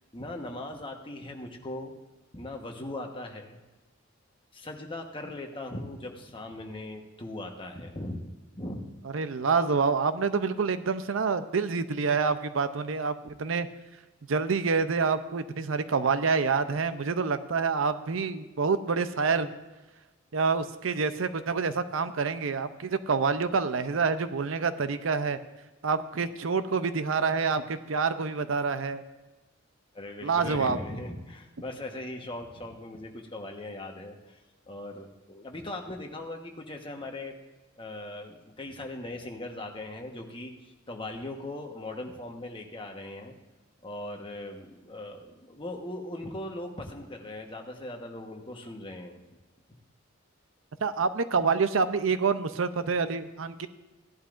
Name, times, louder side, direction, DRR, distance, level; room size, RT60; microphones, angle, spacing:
voice 1, 0.1-1.9 2.3-3.6 4.5-8.8 29.9-34.4 34.7-37.3 37.8-43.4 43.8-49.2, left 1 dB, 25° left, 2 dB, 1.2 m, -39 dB
voice 2, 9.1-13.7 14.3-19.5 20.3-25.4 25.8-29.0 30.2-30.8 50.8-53.7, right 5 dB, 70° right, 11 dB, 0.6 m, -27 dB
16.5 x 11.0 x 2.5 m, 1.2 s
head